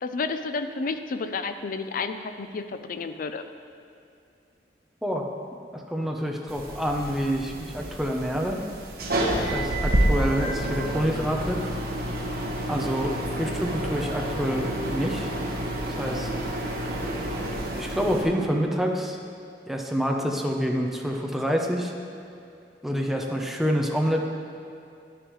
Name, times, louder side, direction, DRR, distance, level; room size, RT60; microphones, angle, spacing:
voice 1, 0.0-3.4, left 4 dB, 50° left, 9 dB, 0.4 m, -31 dB
voice 2, 5.7-8.6 9.5-11.6 12.7-15.3 16.0-16.3 17.7-19.2 19.7-21.9 22.8-24.3, equal, ahead, 1 dB, 0.7 m, -27 dB
sound 1, 6.5-18.2, right 1 dB, 60° right, 1.2 m, -29 dB
9.9 x 9.7 x 3.1 m, 2.5 s
head